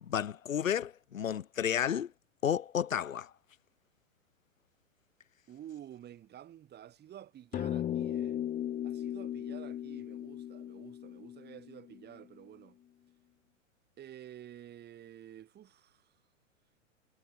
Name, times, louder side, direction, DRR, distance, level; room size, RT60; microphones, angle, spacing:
voice 1, 0.0-2.1 2.4-3.3, left 9 dB, 80° left, 1.3 m, -32 dB
voice 2, 5.5-8.4 8.8-12.8 14.0-16.1, right 11 dB, 25° right, 6.3 m, -50 dB
sound 1, 7.5-12.2, left 11 dB, 20° left, 1.3 m, -37 dB
hypercardioid pair, 115°, 39 cm